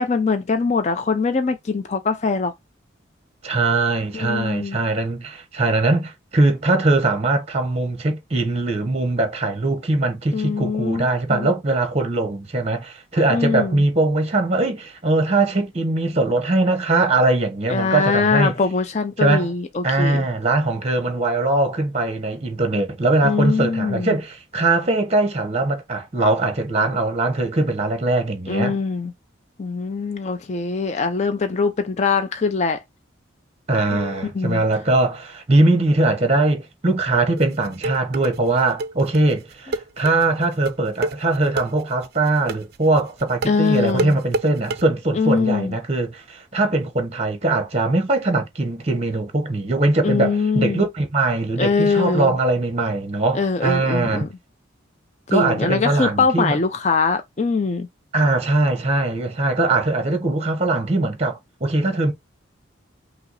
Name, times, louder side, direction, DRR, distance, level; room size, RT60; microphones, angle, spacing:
voice 1, 0.0-2.5 4.1-4.8 10.3-11.5 13.3-13.8 17.7-20.3 23.2-24.1 28.5-29.1 29.6-32.8 33.9-34.6 43.5-44.2 45.1-45.7 50.0-50.8 51.6-52.3 53.3-54.3 55.3-57.9, left 4 dB, 35° left, 0.4 m, -22 dB
voice 2, 3.4-18.6 19.2-19.5 19.8-28.8 33.7-54.3 55.3-56.6 58.1-62.1, right 2 dB, 30° right, 0.9 m, -21 dB
sound 1, 37.4-44.8, right 2 dB, 50° right, 0.4 m, -28 dB
5.5 x 2.0 x 4.0 m
head